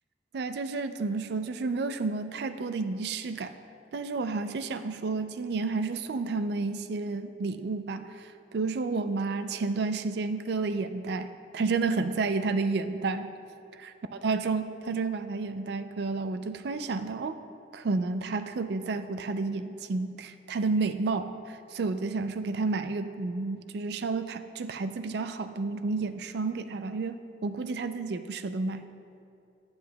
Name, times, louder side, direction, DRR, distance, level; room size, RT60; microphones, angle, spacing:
voice 1, 0.3-3.5 3.9-13.3 13.8-13.9 14.2-17.4 17.7-28.9, right 3 dB, 65° right, 10 dB, 0.4 m, -31 dB
10.5 x 9.3 x 2.3 m, 2.5 s
head